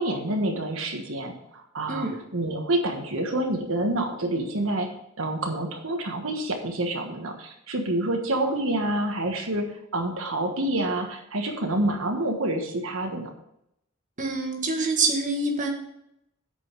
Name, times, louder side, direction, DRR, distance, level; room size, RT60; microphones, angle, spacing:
voice 1, 0.0-2.1 2.3-4.9 5.2-9.7 9.9-13.3, right 1 dB, 85° right, 2 dB, 1.4 m, -27 dB
voice 2, 1.9-2.2 14.2-15.7, right 3 dB, 40° right, 1 dB, 1.7 m, -26 dB
8.5 x 5.4 x 6.7 m, 0.79 s
head